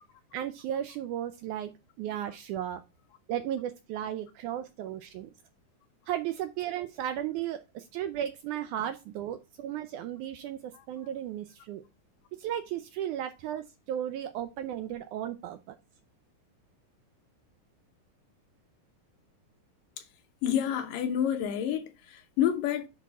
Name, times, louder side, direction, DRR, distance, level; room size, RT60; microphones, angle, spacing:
voice 1, 0.3-1.7 2.0-2.8 3.3-5.3 6.1-11.8 12.4-15.8, right 11 dB, 80° right, 1.8 m, -35 dB
voice 2, 20.4-22.9, left 9 dB, 75° left, 2.4 m, -28 dB
10.0 x 3.5 x 4.1 m
omnidirectional pair, 4.0 m